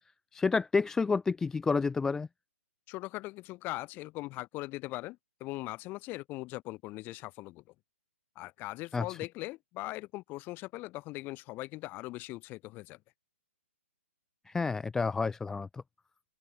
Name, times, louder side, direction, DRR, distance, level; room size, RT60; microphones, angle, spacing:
voice 1, 0.3-2.3 8.9-9.0 14.5-15.7, left 4 dB, 5° left, 0.4 m, -29 dB
voice 2, 2.9-7.6 8.3-13.0, left 20 dB, 25° left, 3.4 m, -40 dB
open air
hypercardioid pair, 145°, 7 cm